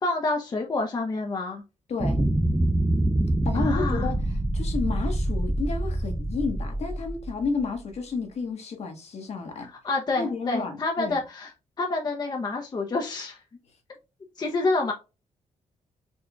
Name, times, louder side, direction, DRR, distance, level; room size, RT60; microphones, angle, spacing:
voice 1, 0.0-1.6 3.5-4.1 9.6-11.5 11.8-13.4 14.4-14.9, left 3 dB, 30° left, 0.6 m, -28 dB
voice 2, 1.9-2.2 3.4-4.2 4.5-9.7 10.2-11.2 14.4-14.5, left 4 dB, 55° left, 1.0 m, -31 dB
sound 1, 2.0-7.7, right 1 dB, 10° right, 0.5 m, -26 dB
4.3 x 2.8 x 2.2 m
cardioid pair, 100°, 13 cm